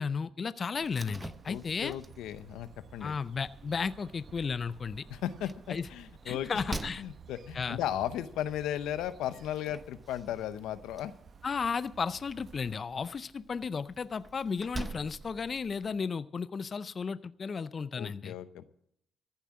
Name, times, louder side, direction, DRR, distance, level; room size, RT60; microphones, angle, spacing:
voice 1, 0.0-2.0 3.0-5.0 5.7-5.9 6.2-7.0 7.5-7.8 11.4-18.4, left 5 dB, 40° left, 15 dB, 0.4 m, -34 dB
Slam, 0.8-15.9, right 3 dB, 25° right, 0.9 m, -48 dB
sound 1, 1.2-12.8, right 6 dB, 55° right, 0.9 m, -55 dB
voice 2, 1.5-3.2 5.1-11.1 18.0-18.6, left 11 dB, 90° left, 13 dB, 0.7 m, -36 dB
14.5 x 7.3 x 8.6 m, 0.74 s
cardioid pair, 90°, 0 cm